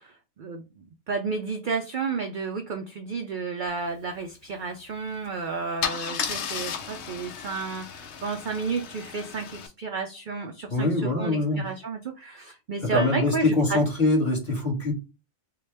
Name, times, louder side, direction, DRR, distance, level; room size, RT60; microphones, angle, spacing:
voice 1, 0.0-13.8, right 4 dB, 65° right, 0.5 m, -32 dB
Car / Engine starting / Idling, 5.1-5.3 5.8-9.7, left 7 dB, 65° left, 0.9 m, -34 dB
voice 2, 10.7-11.7 12.8-14.9, left 2 dB, 40° left, 1.5 m, -23 dB
3.8 x 2.2 x 3.2 m
omnidirectional pair, 1.3 m